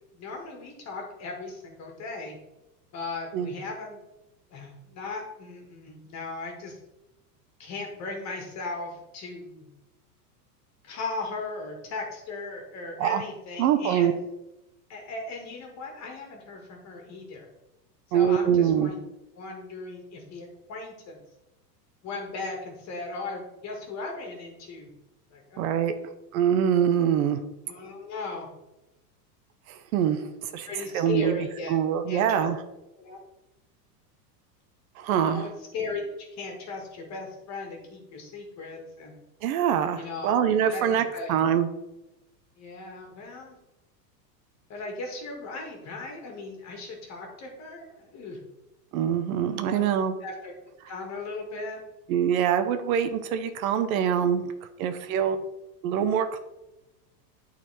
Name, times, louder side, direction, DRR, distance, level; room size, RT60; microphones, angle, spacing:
voice 1, 0.1-2.4 2.9-4.0 4.5-6.8 7.6-9.7 10.8-14.1 14.9-17.5 18.1-19.0 19.4-21.2 22.0-24.9 25.3-25.8 27.6-28.5 30.7-31.8 32.1-32.5 33.0-33.2 35.2-36.0 36.3-39.2 39.9-40.3 40.7-41.4 42.6-43.6 44.7-48.4 49.4-49.9 50.2-50.5 50.9-51.8 55.1-55.3, left 3 dB, 35° left, 1 dB, 2.2 m, -37 dB
voice 2, 13.6-14.1 18.1-18.9 25.6-25.9 26.3-27.4 29.7-30.2 30.5-30.7 30.9-31.3 31.7-32.6 35.0-35.5 39.4-41.7 48.9-50.1 52.1-54.4 54.8-55.4 55.8-56.4, right 9 dB, 60° right, 9 dB, 0.9 m, -24 dB
8.9 x 4.3 x 4.4 m, 0.95 s
supercardioid pair, 130°, 48 cm